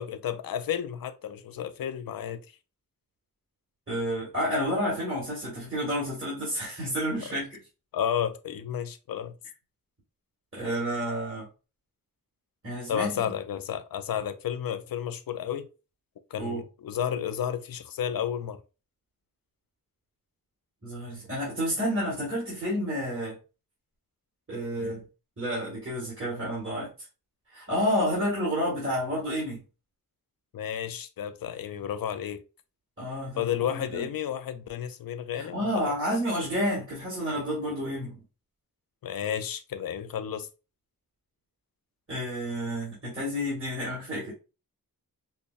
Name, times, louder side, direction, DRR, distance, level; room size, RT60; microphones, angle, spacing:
voice 1, 0.0-2.5 7.2-7.3 7.9-9.4 12.9-15.7 16.3-18.6 30.5-32.4 33.4-35.9 39.0-40.5, left 9 dB, 75° left, 0.5 m, -32 dB
voice 2, 3.9-7.6 10.5-11.5 12.6-13.2 16.4-16.6 20.8-23.4 24.5-25.1 25.4-26.9 27.5-29.6 33.0-34.1 35.3-38.2 42.1-44.3, equal, 35° right, 1.9 m, -30 dB
5.3 x 2.1 x 2.4 m
wide cardioid pair, 115°, 36 cm